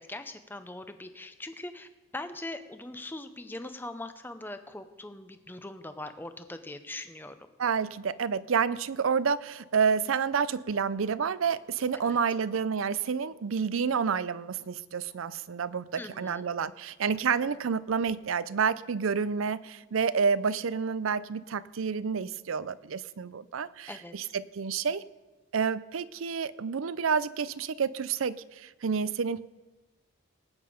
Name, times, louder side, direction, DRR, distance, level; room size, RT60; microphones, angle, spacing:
voice 1, 0.0-7.3 16.0-16.4 23.9-24.1, left 2 dB, 10° left, 9 dB, 0.7 m, -41 dB
voice 2, 7.6-25.0 25.5-29.4, right 6 dB, 80° right, 17 dB, 0.5 m, -29 dB
19.5 x 9.0 x 5.1 m, 1.2 s
head